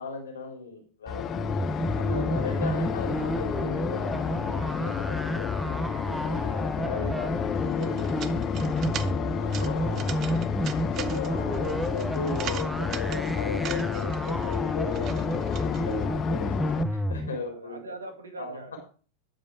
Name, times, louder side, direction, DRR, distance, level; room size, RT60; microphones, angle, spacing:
voice 1, 0.0-1.4 1.9-8.7 9.4-10.4 10.8-16.6 16.8-17.8 18.4-18.8, left 3 dB, 85° left, 2 dB, 3.7 m, -37 dB
sound 1, 1.1-16.8, left 9 dB, 35° left, 0.6 m, -31 dB
sound 2, 1.3-17.3, equal, 5° right, 0.8 m, -31 dB
sound 3, 7.5-16.1, right 10 dB, 40° right, 0.8 m, -41 dB
voice 2, 17.0-18.8, right 2 dB, 90° right, 5 dB, 2.2 m, -43 dB
11.5 x 5.3 x 4.7 m, 0.38 s
hypercardioid pair, 95°, 0 cm